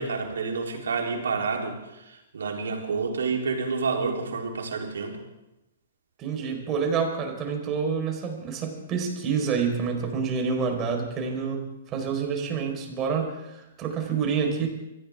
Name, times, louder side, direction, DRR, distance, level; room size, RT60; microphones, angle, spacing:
voice 1, 0.0-5.2, right 4 dB, 75° right, 1 dB, 3.6 m, -29 dB
voice 2, 6.2-14.7, right 6 dB, 30° right, 2 dB, 4.6 m, -28 dB
25.5 x 15.5 x 3.6 m, 0.96 s
hypercardioid pair, 120°, 0 cm